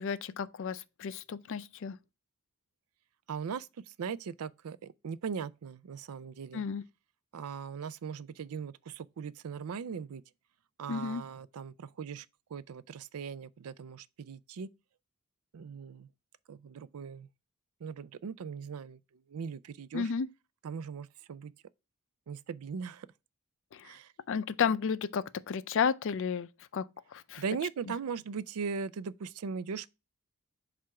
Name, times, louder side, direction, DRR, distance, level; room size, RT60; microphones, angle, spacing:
voice 1, 0.0-2.0 6.5-6.8 10.9-11.2 19.9-20.3 23.7-23.8 24.3-26.8 27.1-27.4, left 6 dB, 60° left, 0.4 m, -32 dB
voice 2, 3.3-6.6 7.3-10.2 10.8-14.7 15.5-16.1 16.5-17.3 17.8-20.1 20.6-21.5 22.3-23.1 23.8-24.1 27.4-29.9, right 6 dB, 80° right, 0.4 m, -39 dB
7.5 x 2.5 x 5.6 m
head